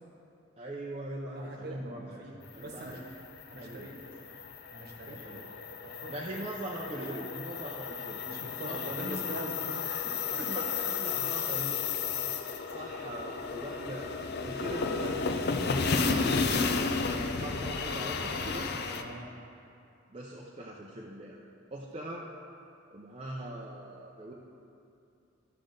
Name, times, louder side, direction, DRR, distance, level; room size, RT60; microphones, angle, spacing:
voice 1, 0.6-3.0 3.6-4.0 4.3-4.4 5.0-5.5 6.1-8.2 8.6-9.2 10.3-11.8 12.6-14.1 14.4-15.2 15.8-16.9 17.3-18.7 20.1-21.4 21.7-22.3 22.9-24.3, right 1 dB, 30° right, -4 dB, 0.6 m, -41 dB
voice 2, 1.3-3.0 3.5-4.0 4.7-5.4 5.8-6.5 6.9-7.3 8.2-10.8 18.9-19.3, right 1 dB, 50° right, 1 dB, 1.2 m, -43 dB
sound 1, 2.6-19.0, left 4 dB, 55° left, 0.5 m, -33 dB
13.0 x 6.7 x 3.8 m, 2.6 s
head